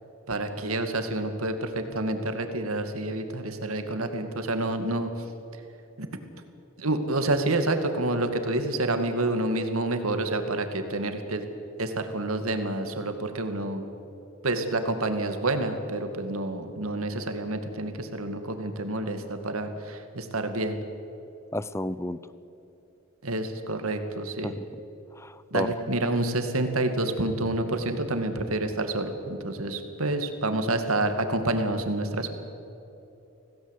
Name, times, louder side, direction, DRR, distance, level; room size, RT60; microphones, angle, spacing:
voice 1, 0.3-5.1 6.0-6.1 6.8-11.4 11.8-13.8 14.4-20.8 23.2-24.5 25.5-32.3, right 2 dB, 85° right, 7 dB, 2.3 m, -28 dB
voice 2, 21.5-22.2 24.4-24.7 25.2-25.7, left 1 dB, 15° left, 16 dB, 0.5 m, -32 dB
26.0 x 17.0 x 8.3 m, 3.0 s
head